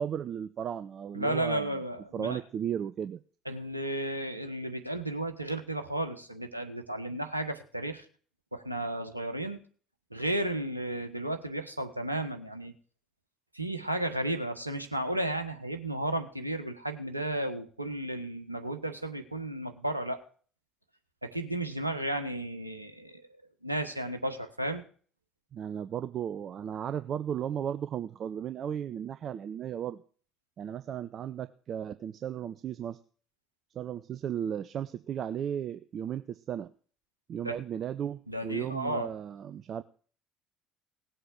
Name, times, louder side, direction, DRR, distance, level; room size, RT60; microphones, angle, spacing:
voice 1, 0.0-1.7 2.1-3.2 25.5-30.0 30.6-33.0 33.8-36.7 37.3-39.8, right 9 dB, 45° right, 12 dB, 0.7 m, -35 dB
voice 2, 1.1-2.4 3.4-8.0 8.5-9.6 10.1-12.7 13.5-20.2 21.2-23.2 23.6-24.8 37.4-37.6 38.3-39.1, right 1 dB, 90° right, 7 dB, 1.4 m, -33 dB
18.5 x 8.0 x 6.0 m, 0.42 s
figure-of-eight pair, 55°, 0 cm